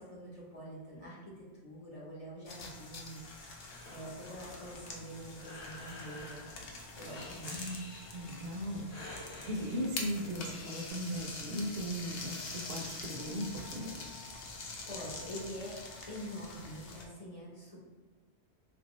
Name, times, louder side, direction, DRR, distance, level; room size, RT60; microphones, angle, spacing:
voice 1, 0.0-3.6 3.9-7.5 14.9-17.8, equal, 35° left, -6 dB, 0.9 m, -46 dB
sound 1, 2.5-17.1, left 3 dB, 70° left, 0.8 m, -45 dB
Breathing, 3.7-10.9, left 2 dB, 90° left, 1.2 m, -51 dB
voice 2, 7.4-7.8 8.1-13.9, equal, 70° right, 1 dB, 0.8 m, -38 dB
3.4 x 2.6 x 2.9 m, 1.3 s
omnidirectional pair, 1.1 m